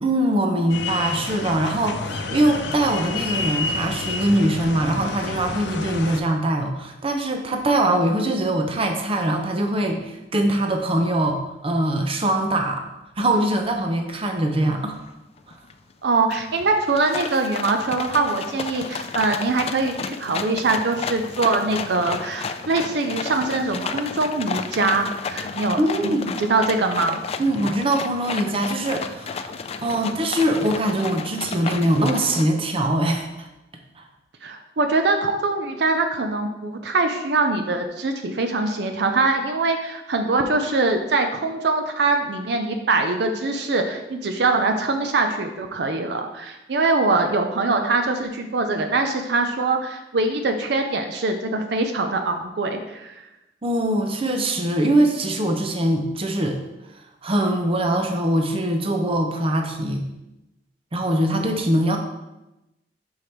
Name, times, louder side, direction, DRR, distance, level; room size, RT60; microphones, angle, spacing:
voice 1, 0.0-12.8 13.2-15.0 25.8-26.3 27.4-33.5 34.0-34.1 53.6-56.6 57.2-60.1 60.9-62.0, right 1 dB, 35° right, 4 dB, 0.7 m, -22 dB
sound 1, 0.7-6.2, left 3 dB, 85° left, 0.6 m, -29 dB
sound 2, 15.1-15.2 15.5-15.9 16.3-32.4, left 5 dB, 35° left, 0.3 m, -32 dB
voice 2, 16.0-27.2 34.4-53.2, right 3 dB, 70° right, 5 dB, 0.6 m, -23 dB
5.5 x 4.9 x 4.5 m, 0.97 s
head